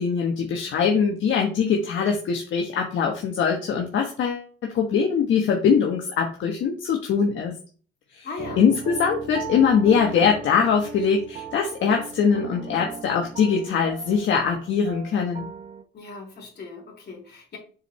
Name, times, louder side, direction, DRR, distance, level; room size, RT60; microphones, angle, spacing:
voice 1, 0.0-7.5 8.1-8.3 8.6-15.5, left 6 dB, 75° left, 1 dB, 1.2 m, -22 dB
voice 2, 8.2-8.6 15.9-17.6, left 4 dB, 55° left, -1 dB, 3.0 m, -38 dB
sound 1, 8.4-15.8, right 6 dB, 40° right, 0.8 m, -39 dB
6.7 x 4.4 x 3.2 m, 0.40 s
cardioid pair, 90°, 20 cm